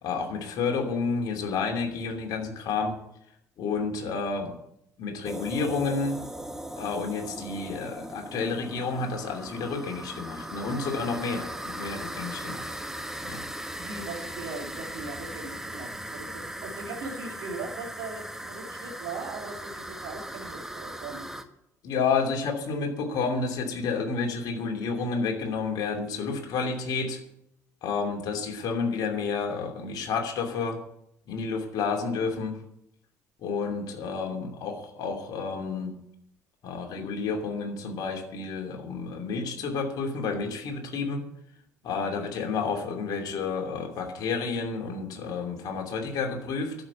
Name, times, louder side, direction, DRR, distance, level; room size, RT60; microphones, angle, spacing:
voice 1, 0.0-2.9 3.6-4.6 5.0-6.2 6.8-12.7 13.2-13.4 21.8-27.2 27.8-30.8 31.3-32.6 33.4-36.0 36.6-41.2 41.8-46.7, left 4 dB, 55° left, 3 dB, 2.9 m, -30 dB
sound 1, 5.2-21.4, right 1 dB, 5° right, 1.4 m, -38 dB
voice 2, 10.7-11.0 13.8-21.3 34.3-34.5, right 3 dB, 60° right, 0 dB, 3.4 m, -39 dB
11.0 x 7.5 x 9.8 m, 0.77 s
figure-of-eight pair, 55°, 8 cm